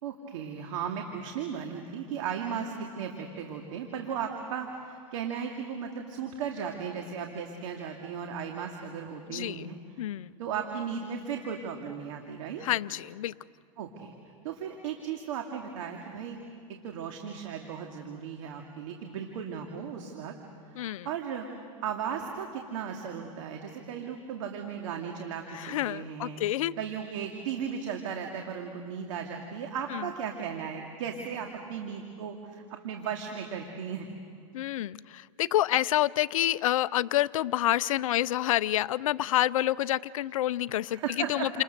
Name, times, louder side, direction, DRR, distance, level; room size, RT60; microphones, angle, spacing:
voice 1, 0.0-9.8 10.4-12.6 13.8-16.4 16.8-20.3 20.8-21.5 21.8-26.4 26.8-34.1 40.9-41.6, right 7 dB, 70° right, 2 dB, 2.4 m, -36 dB
voice 2, 9.3-9.7 10.0-10.3 12.6-13.3 20.8-21.1 25.5-26.7 29.9-30.0 34.5-41.6, left 13 dB, 80° left, 18 dB, 0.6 m, -28 dB
29.5 x 27.5 x 6.7 m, 2.2 s
supercardioid pair, 125°, 17 cm